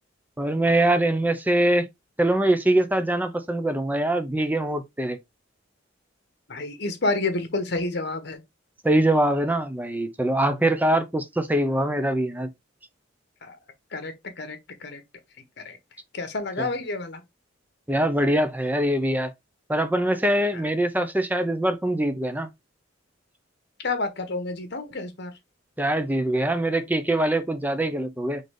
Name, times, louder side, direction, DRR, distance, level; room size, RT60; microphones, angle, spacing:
voice 1, 0.4-1.9 2.2-5.2 8.8-12.5 16.6-16.7 17.9-19.3 19.7-22.5 25.8-28.4, right 1 dB, 10° right, 0.6 m, -23 dB
voice 2, 6.5-8.4 13.4-13.6 13.9-15.0 15.6-15.8 16.1-17.2 20.5-20.6 23.8-25.3, left 3 dB, 60° left, 1.0 m, -29 dB
3.9 x 3.8 x 3.3 m
head